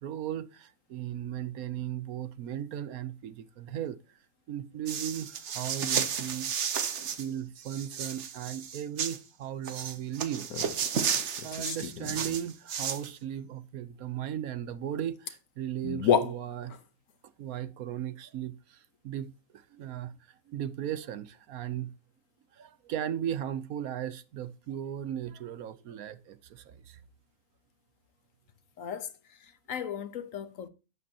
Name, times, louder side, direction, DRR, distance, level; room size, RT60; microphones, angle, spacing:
voice 1, 0.0-4.0 4.5-6.5 7.2-10.7 11.4-16.7 17.4-20.1 20.5-21.9 22.5-27.0, right 10 dB, 75° right, 1.2 m, -37 dB
sound 1, 4.9-7.3 7.6-9.2 9.6-13.1, right 7 dB, 55° right, 1.1 m, -33 dB
sound 2, 10.4-10.8 11.4-12.4 15.0-15.1 15.3-15.4 15.8-16.8, left 7 dB, 85° left, 1.5 m, -30 dB
voice 2, 28.8-29.1 29.4-30.7, left 8 dB, 65° left, 1.2 m, -37 dB
11.0 x 8.5 x 2.8 m
omnidirectional pair, 1.5 m